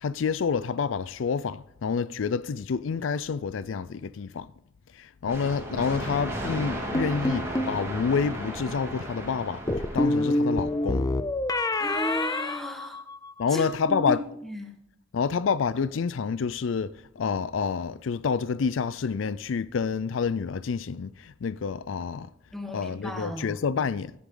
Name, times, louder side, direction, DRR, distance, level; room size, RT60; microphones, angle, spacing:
voice 1, 0.0-4.5 5.0-9.6 9.9-11.1 13.4-14.2 15.1-16.9 17.2-22.3 22.7-24.1, left 5 dB, 90° left, 0.4 m, -28 dB
sound 1, 5.2-10.8, right 1 dB, 15° right, 2.4 m, -35 dB
sound 2, 6.9-7.8 9.7-13.4, left 1 dB, 20° left, 0.6 m, -27 dB
voice 2, 11.8-13.0 13.5-14.7 22.5-23.6, equal, ahead, 1.6 m, -34 dB
16.0 x 8.5 x 3.8 m
head